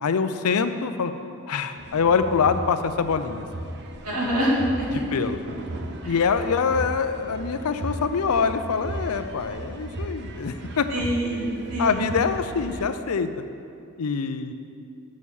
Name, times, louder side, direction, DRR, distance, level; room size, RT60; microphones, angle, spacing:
voice 1, 0.0-1.1 1.5-3.5 5.1-5.4 6.0-10.9 11.8-13.4 14.0-14.5, left 5 dB, 70° left, 10 dB, 0.5 m, -24 dB
sound 1, 1.8-12.9, right 1 dB, 50° right, 0.7 m, -36 dB
voice 2, 4.0-4.9 6.0-6.2 10.9-12.2, equal, 90° right, -5 dB, 2.5 m, -25 dB
7.4 x 6.4 x 7.0 m, 2.5 s
head